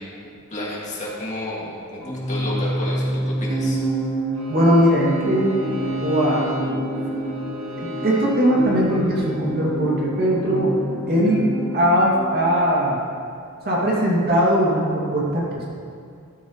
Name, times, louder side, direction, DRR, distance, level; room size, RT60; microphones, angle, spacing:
voice 1, 0.5-3.8 5.8-6.0, left 1 dB, 35° left, -5 dB, 2.3 m, -31 dB
Organ, 2.0-12.8, left 1 dB, 15° left, 0.4 m, -31 dB
sound 1, 3.5-11.7, right 2 dB, 25° right, 0.9 m, -29 dB
Bowed string instrument, 4.3-9.4, left 3 dB, 60° right, 2.3 m, -37 dB
voice 2, 4.5-5.6 6.0-6.5 7.8-10.7 11.1-11.5 11.7-13.0 13.7-15.6, equal, 45° right, -4 dB, 2.5 m, -20 dB
13.5 x 13.0 x 3.2 m, 2.3 s
head